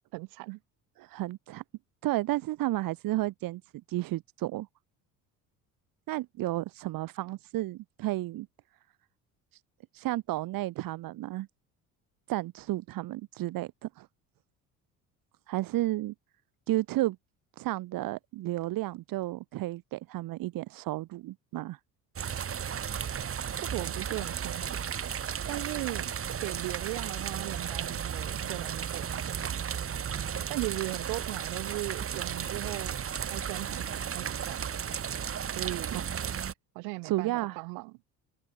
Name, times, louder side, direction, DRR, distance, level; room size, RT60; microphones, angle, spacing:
voice 1, 0.1-0.6 23.6-24.8 25.5-26.1 26.4-29.6 30.5-34.8 35.5-36.1 36.8-37.9, right 31 dB, 85° right, 7.2 m, -38 dB
voice 2, 1.0-1.6 2.0-3.6 3.9-4.7 6.1-8.5 9.5-9.6 9.9-11.5 12.3-14.1 15.5-16.1 16.7-17.2 17.6-21.8 35.9-36.3 37.0-37.6, right 17 dB, 70° right, 2.3 m, -32 dB
sound 1, 22.2-36.5, right 8 dB, 40° right, 2.0 m, -34 dB
open air
supercardioid pair, 90°, 36 cm